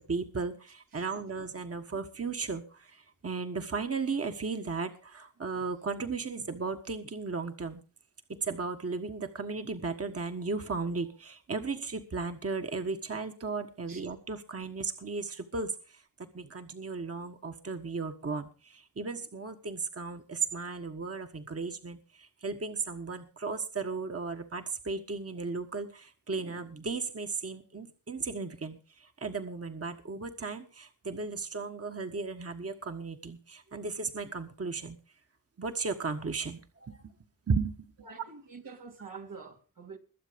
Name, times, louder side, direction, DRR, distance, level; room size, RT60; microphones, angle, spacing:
voice 1, 0.0-7.8 8.3-35.0 35.6-37.1 37.5-37.7, right 4 dB, 45° right, 1.5 m, -35 dB
voice 2, 38.0-40.0, right 4 dB, 85° right, 2.5 m, -46 dB
21.5 x 7.5 x 5.2 m
cardioid pair, 55°, 32 cm